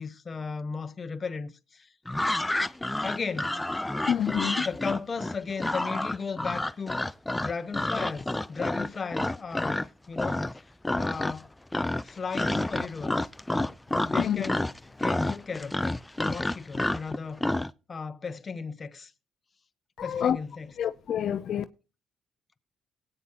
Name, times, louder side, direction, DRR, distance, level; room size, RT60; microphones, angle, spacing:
voice 1, 0.0-1.9 3.0-3.6 4.6-7.0 7.3-10.5 11.0-11.5 12.0-13.3 14.0-14.6 15.0-17.5 17.9-19.1 20.0-20.7, left 5 dB, 35° left, 1.0 m, -35 dB
sound 1, 2.1-9.9 10.2-10.6 10.8-11.5 11.7-17.7, left 1 dB, 10° left, 0.5 m, -29 dB
voice 2, 4.1-4.7 14.2-14.4 20.0-20.4 20.8-21.6, left 9 dB, 65° left, 0.5 m, -27 dB
19.0 x 9.0 x 2.9 m
cardioid pair, 90°, 0 cm